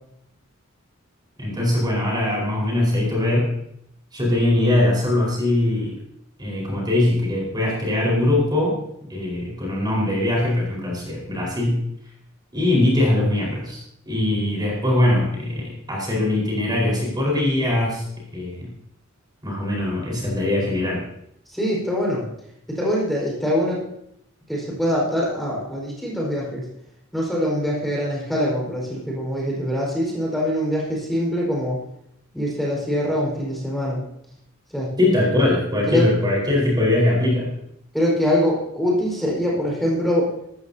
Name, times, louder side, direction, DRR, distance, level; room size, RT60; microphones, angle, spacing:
voice 1, 1.4-3.5 4.1-5.9 6.4-8.8 9.1-11.8 12.5-13.8 14.1-18.0 18.3-18.7 19.4-21.0 35.0-37.5, left 1 dB, 20° right, -3 dB, 4.7 m, -21 dB
voice 2, 21.5-22.2 22.7-23.8 24.5-26.7 27.1-31.8 32.3-34.0 34.7-34.9 35.9-36.1 37.9-40.3, equal, ahead, -4 dB, 4.9 m, -23 dB
18.0 x 14.0 x 2.8 m, 0.76 s
head